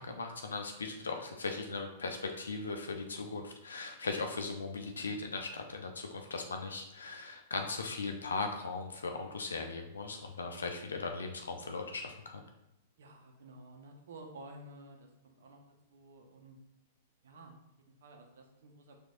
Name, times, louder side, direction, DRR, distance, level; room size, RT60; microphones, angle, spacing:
voice 1, 0.0-12.4, left 3 dB, 80° left, 4 dB, 0.5 m, -38 dB
voice 2, 13.0-15.6 15.9-16.6 17.2-19.0, right 2 dB, 70° right, 2 dB, 0.9 m, -53 dB
4.6 x 2.6 x 3.9 m, 0.88 s
figure-of-eight pair, 105°, 0 cm